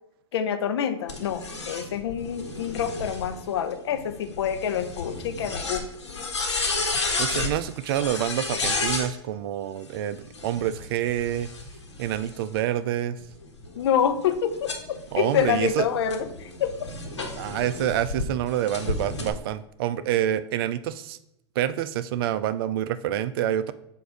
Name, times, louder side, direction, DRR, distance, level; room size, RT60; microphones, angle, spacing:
voice 1, 0.3-5.9 13.8-16.9, left 8 dB, 65° left, 9 dB, 0.7 m, -27 dB
sound 1, 1.1-9.1 10.2-12.6 13.2-18.2 18.7-19.3, left 3 dB, 85° left, 1.2 m, -32 dB
voice 2, 7.2-11.5 12.0-13.2 15.1-15.9 17.3-21.2 21.6-23.7, right 11 dB, 55° right, 14 dB, 0.4 m, -27 dB
7.7 x 2.6 x 5.1 m, 0.83 s
figure-of-eight pair, 95°, 14 cm